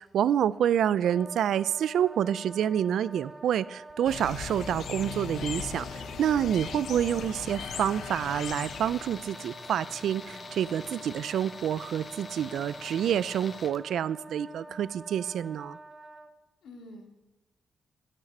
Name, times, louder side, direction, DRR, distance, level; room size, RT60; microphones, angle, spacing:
voice 1, 0.0-15.8, right 9 dB, 85° right, 19 dB, 0.4 m, -28 dB
Wind instrument woodwind instrument, 1.0-16.3, right 2 dB, 20° right, 0.9 m, -47 dB
sound 1, 4.1-9.3, left 7 dB, 65° left, 0.8 m, -38 dB
Tools, 8.4-13.8, left 4 dB, 35° left, 0.8 m, -46 dB
voice 2, 16.6-17.1, left 1 dB, 80° left, 2 dB, 2.6 m, -49 dB
14.0 x 6.7 x 9.7 m, 1.1 s
wide cardioid pair, 170°, 0 cm